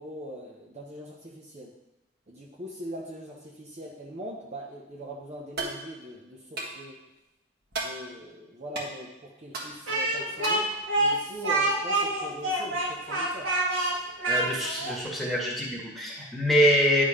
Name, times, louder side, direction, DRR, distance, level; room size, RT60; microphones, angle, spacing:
voice 1, 0.0-1.7 2.3-7.0 7.7-13.5, equal, 35° right, -1 dB, 0.8 m, -41 dB
sound 1, 5.6-5.8 6.6-6.8 7.7-7.9 8.7-8.9 9.5-9.7 10.4-10.7, right 3 dB, 55° right, 1.6 m, -33 dB
Speech, 9.9-15.0, right 2 dB, 80° right, 1.8 m, -27 dB
voice 2, 14.3-17.0, equal, ahead, -4 dB, 1.7 m, -25 dB
9.8 x 3.8 x 5.0 m, 0.98 s
head